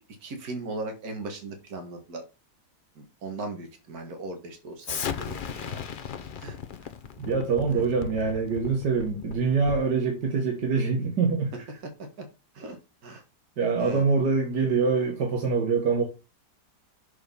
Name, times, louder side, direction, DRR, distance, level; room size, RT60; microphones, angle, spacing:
voice 1, 0.2-2.2 3.0-5.8 6.4-6.6 7.7-7.9 8.6-8.7 11.5-12.3 12.6-13.2 13.8-14.1, right 2 dB, 60° right, 2.0 m, -38 dB
Explosion, 4.8-10.0, left 7 dB, 55° left, 0.5 m, -36 dB
voice 2, 7.2-11.5 13.6-16.0, right 4 dB, 75° right, 2.2 m, -24 dB
6.9 x 4.9 x 5.4 m
omnidirectional pair, 1.8 m